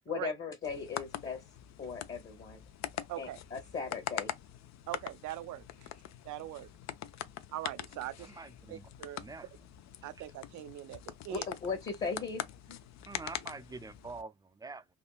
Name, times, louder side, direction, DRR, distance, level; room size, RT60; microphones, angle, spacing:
voice 1, 0.1-1.4 1.8-2.6 3.2-4.3 11.3-12.8, left 5 dB, 35° left, 1.1 m, -38 dB
sound 1, 0.6-14.2, left 11 dB, 65° left, 0.5 m, -43 dB
voice 2, 4.9-5.6 6.2-6.7 7.5-8.3 8.7-9.2 10.0-11.5, right 14 dB, 75° right, 0.5 m, -41 dB
voice 3, 8.2-8.9 9.2-9.5 10.0-10.3 13.1-14.9, right 3 dB, 15° right, 0.4 m, -46 dB
3.6 x 2.2 x 2.3 m
cardioid pair, 90°, 30 cm